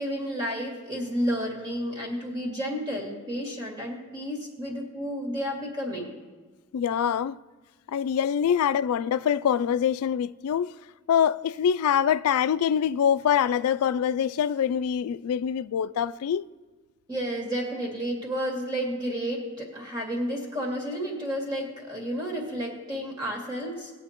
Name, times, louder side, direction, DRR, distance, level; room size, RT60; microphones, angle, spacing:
voice 1, 0.0-6.1 17.1-23.9, equal, 20° right, 2.4 m, -31 dB
voice 2, 6.7-7.4 7.9-10.7 11.1-16.5, left 8 dB, 80° left, 0.3 m, -24 dB
20.0 x 8.4 x 3.0 m
head